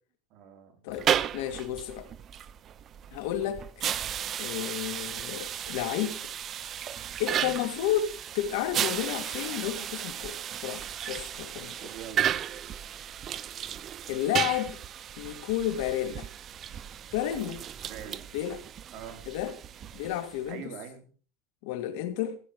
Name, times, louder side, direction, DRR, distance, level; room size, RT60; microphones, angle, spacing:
voice 1, 0.3-0.8 11.8-12.2 17.8-18.2 18.9-19.2 20.5-21.1, right 8 dB, 45° right, 3.4 m, -43 dB
voice 2, 0.8-2.1 3.1-3.6 4.4-6.2 7.2-10.4 10.6-11.7 14.1-14.8 15.2-16.3 17.1-17.6 18.3-18.6 19.3-19.5 19.9-20.7 21.6-22.4, left 11 dB, 70° left, 2.2 m, -31 dB
sound 1, 0.9-20.5, right 10 dB, 30° right, 0.6 m, -34 dB
15.5 x 10.5 x 4.9 m
supercardioid pair, 150°, 0 cm